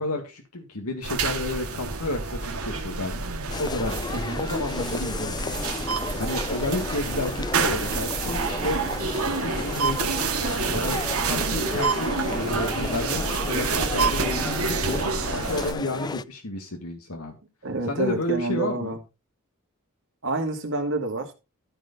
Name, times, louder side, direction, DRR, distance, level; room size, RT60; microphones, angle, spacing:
voice 1, 0.0-3.2 3.6-5.6 6.2-8.8 9.4-10.1 10.7-15.0 15.3-17.3 17.9-19.0, left 2 dB, 85° left, 1.7 m, -31 dB
sound 1, 1.0-15.7, right 4 dB, 80° right, 2.0 m, -28 dB
sound 2, 3.5-16.2, left 3 dB, 20° left, 0.4 m, -33 dB
voice 2, 17.6-19.0 20.2-21.3, right 3 dB, 60° right, 2.3 m, -28 dB
13.5 x 4.6 x 5.3 m
head